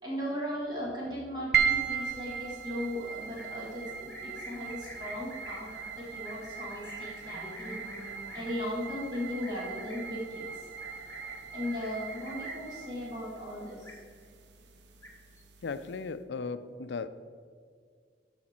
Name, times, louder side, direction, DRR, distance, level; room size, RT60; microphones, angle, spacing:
voice 1, 0.0-5.7 6.0-7.8 8.3-10.7 11.5-14.0, left 1 dB, 25° right, -6 dB, 1.9 m, -37 dB
sound 1, 1.5-16.0, right 7 dB, 75° right, 0.7 m, -37 dB
Livestock farm animals working animals, 3.2-12.8 13.1-13.5 13.7-14.4 14.7-15.4, left 1 dB, 15° left, 1.5 m, -48 dB
voice 2, 15.6-17.1, left 4 dB, 75° left, 13 dB, 0.4 m, -36 dB
13.5 x 5.1 x 4.3 m, 2.1 s
head